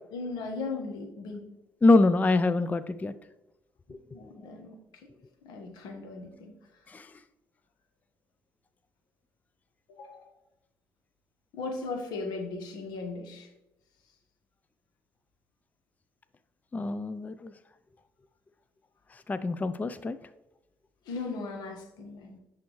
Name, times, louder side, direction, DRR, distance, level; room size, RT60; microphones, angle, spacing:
voice 1, 0.1-1.5 4.1-4.8 5.4-6.5 9.9-10.3 11.5-13.5 21.1-22.4, left 3 dB, 80° left, 4 dB, 1.2 m, -37 dB
voice 2, 1.8-3.1 6.9-7.1 16.7-17.5 19.3-20.2, left 2 dB, 25° left, 13 dB, 0.3 m, -24 dB
10.5 x 3.6 x 3.0 m, 0.95 s
supercardioid pair, 65°, 7 cm